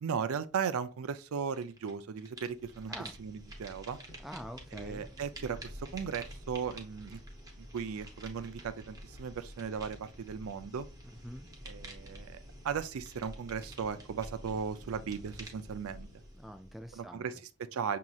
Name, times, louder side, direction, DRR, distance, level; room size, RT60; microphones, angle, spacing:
voice 1, 0.0-4.0 4.7-7.2 7.7-10.9 11.6-12.4 12.6-16.1 16.9-18.0, right 6 dB, 85° right, 0.4 m, -37 dB
sound 1, 1.5-1.9 2.2-17.2, right 1 dB, 15° right, 0.7 m, -48 dB
voice 2, 4.2-5.1 11.2-11.5 16.3-17.3, equal, ahead, 0.3 m, -45 dB
6.1 x 2.8 x 2.3 m
head